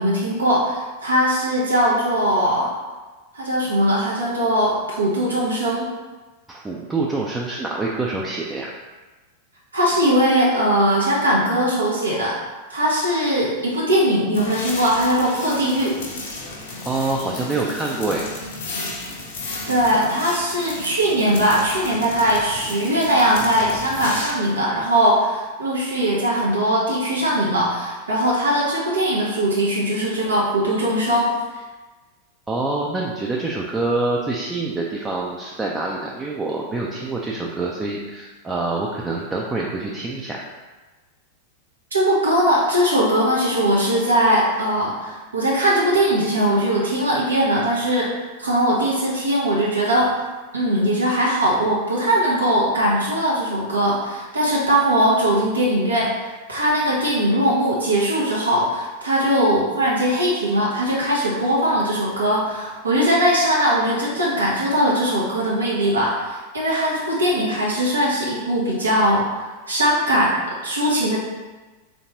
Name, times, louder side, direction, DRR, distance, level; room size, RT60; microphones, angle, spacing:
voice 1, 0.0-2.7 3.3-5.9 9.7-12.4 12.7-15.9 19.7-31.3 41.9-48.1 48.4-50.3 50.5-56.1 56.5-70.4 70.6-71.2, equal, 75° right, -5 dB, 0.7 m, -20 dB
voice 2, 6.5-8.7 16.8-18.3 32.5-40.4, right 2 dB, 15° right, -3 dB, 0.3 m, -26 dB
sound 1, 14.3-24.3, left 2 dB, 55° left, 0.6 m, -33 dB
3.4 x 2.6 x 2.9 m, 1.3 s
figure-of-eight pair, 90°, 0 cm